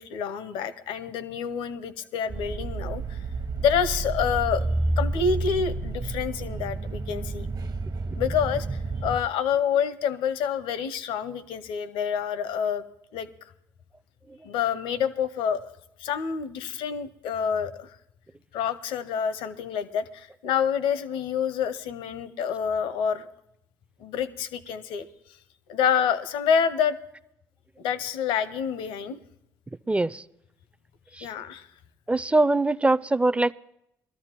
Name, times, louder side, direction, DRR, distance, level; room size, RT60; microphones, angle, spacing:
voice 1, 0.0-3.2 3.6-4.7 5.0-7.5 8.2-12.8 13.1-13.3 14.4-15.7 16.0-17.9 18.5-23.3 24.0-25.1 25.7-27.0 27.8-29.2 31.2-31.7, left 7 dB, 75° left, 13 dB, 0.7 m, -27 dB
sound 1, 2.3-9.2, right 2 dB, 45° right, 0.9 m, -30 dB
voice 2, 29.9-30.2 32.1-33.5, right 2 dB, 15° right, 17 dB, 0.4 m, -22 dB
21.5 x 13.5 x 3.0 m, 0.81 s
hypercardioid pair, 50°, 9 cm